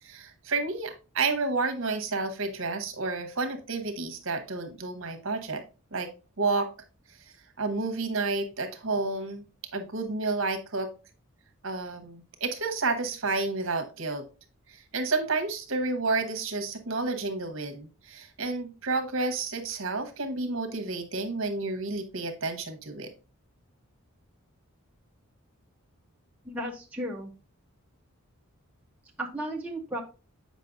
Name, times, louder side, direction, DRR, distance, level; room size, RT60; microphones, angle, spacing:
voice 1, 0.0-5.6 5.9-6.1 6.4-6.7 7.6-9.4 9.7-10.9 11.6-14.2 14.7-23.1, right 3 dB, 60° right, 6 dB, 1.0 m, -30 dB
voice 2, 26.4-27.3 29.2-30.0, right 1 dB, 5° right, -2 dB, 0.6 m, -34 dB
7.4 x 5.1 x 2.6 m, 0.32 s
head